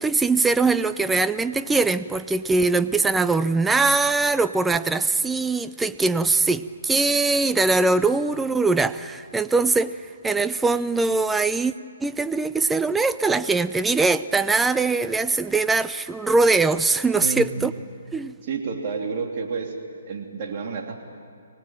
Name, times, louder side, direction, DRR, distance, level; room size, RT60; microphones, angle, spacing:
voice 1, 0.0-9.9 10.2-11.7 12.0-17.7 18.1-18.3, right 3 dB, 5° right, 13 dB, 0.5 m, -22 dB
voice 2, 17.2-17.8 18.4-19.7 20.1-21.0, right 5 dB, 45° right, 2 dB, 3.0 m, -30 dB
24.5 x 19.0 x 9.0 m, 2.3 s
hypercardioid pair, 145°, 0 cm